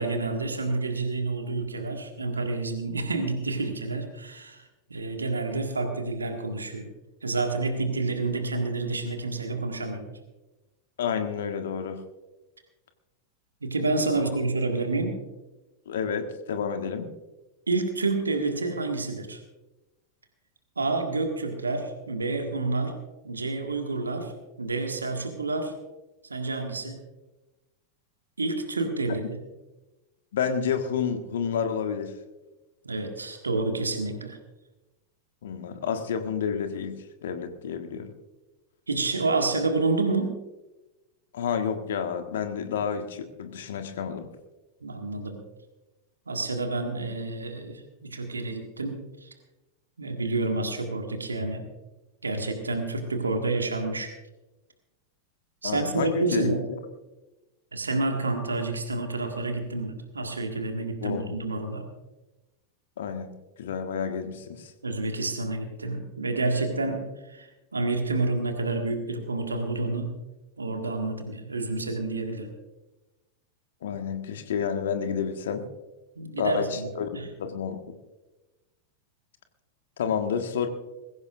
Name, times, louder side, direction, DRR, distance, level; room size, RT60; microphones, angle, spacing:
voice 1, 0.0-6.9 7.2-10.1 13.6-15.2 17.7-19.4 20.8-23.0 23.2-24.3 24.6-25.7 26.3-27.0 28.4-29.4 32.8-34.4 38.9-40.4 44.8-45.4 46.3-49.3 50.0-51.7 52.2-54.1 55.6-56.6 57.7-61.9 64.8-70.2 70.6-72.5 76.2-77.3, right 3 dB, 75° right, 4 dB, 1.8 m, -29 dB
voice 2, 11.0-12.0 15.8-17.1 30.3-32.1 35.4-36.9 37.2-38.1 41.3-44.3 55.6-56.5 61.0-61.3 63.0-63.3 63.6-64.7 73.8-75.7 76.4-77.9 80.0-80.7, left 7 dB, 60° left, 7 dB, 1.5 m, -30 dB
21.0 x 16.0 x 2.5 m, 1.1 s
figure-of-eight pair, 90°, 0 cm